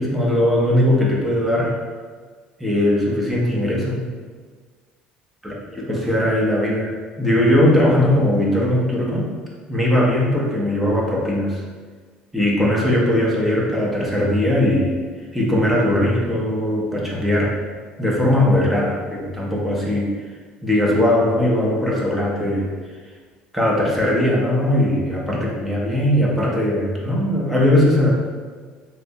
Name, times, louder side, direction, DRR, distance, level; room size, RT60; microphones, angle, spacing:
voice 1, 0.0-1.8 2.6-4.1 5.4-9.3 9.7-11.6 12.3-15.0 15.3-17.6 18.0-20.2 20.6-22.7 23.5-28.1, left 1 dB, ahead, -4 dB, 0.5 m, -19 dB
3.2 x 2.8 x 2.6 m, 1.5 s
cardioid pair, 180°, 3 cm